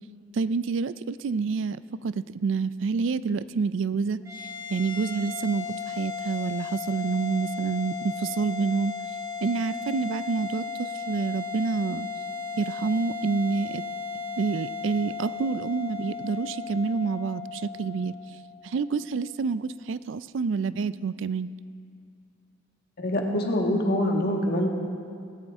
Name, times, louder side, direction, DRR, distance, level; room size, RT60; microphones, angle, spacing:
voice 1, 0.3-1.8 2.0-4.2 4.7-8.9 9.4-12.1 12.6-13.8 14.4-18.1 18.6-21.5, right 5 dB, 65° right, 15 dB, 0.4 m, -28 dB
sound 1, 4.2-18.8, left 5 dB, 15° right, 2.5 m, -36 dB
voice 2, 23.0-24.7, left 1 dB, 50° left, 1 dB, 1.7 m, -25 dB
18.0 x 16.5 x 3.6 m, 2.4 s
head